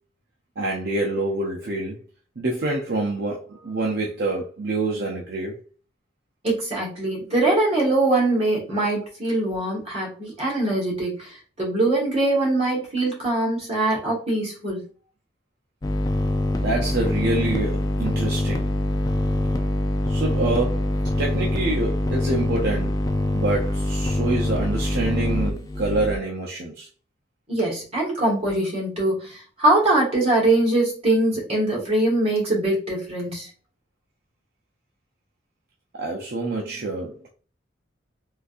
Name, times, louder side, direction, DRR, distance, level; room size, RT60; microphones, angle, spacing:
voice 1, 0.6-2.0 2.4-5.6 16.6-18.7 20.1-23.1 23.3-26.9 35.9-37.3, right 2 dB, 55° right, 0.6 m, -26 dB
voice 2, 6.4-14.8 27.5-33.5, right 2 dB, 35° right, 1.6 m, -22 dB
sound 1, 15.8-26.2, left 1 dB, 20° left, 0.3 m, -24 dB
3.8 x 2.6 x 2.5 m
head